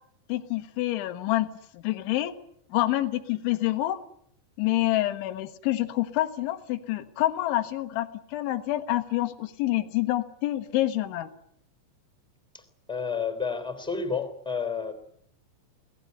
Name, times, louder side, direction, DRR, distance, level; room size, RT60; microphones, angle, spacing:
voice 1, 0.3-1.5 1.7-2.3 2.7-4.0 4.6-11.3, left 15 dB, 75° left, 9 dB, 3.6 m, -27 dB
voice 2, 12.9-14.9, left 5 dB, ahead, 9 dB, 2.0 m, -30 dB
24.0 x 18.0 x 9.5 m, 0.70 s
omnidirectional pair, 5.8 m